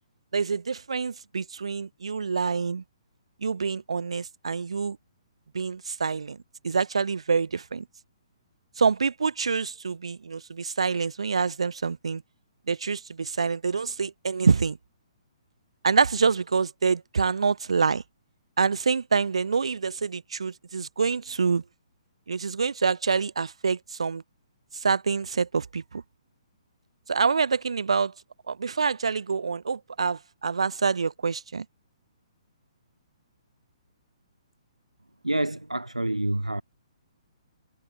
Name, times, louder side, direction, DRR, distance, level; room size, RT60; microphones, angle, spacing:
voice 1, 0.3-2.8 3.4-5.0 5.5-6.4 6.6-7.8 8.8-12.2 12.7-14.8 15.8-18.0 18.6-21.6 22.3-24.2 24.7-26.0 27.1-28.1 28.5-31.6, right 5 dB, 65° right, 3.6 m, -26 dB
voice 2, 35.2-36.6, right 1 dB, 90° right, 2.0 m, -27 dB
figure-of-eight pair, 130°, 3 cm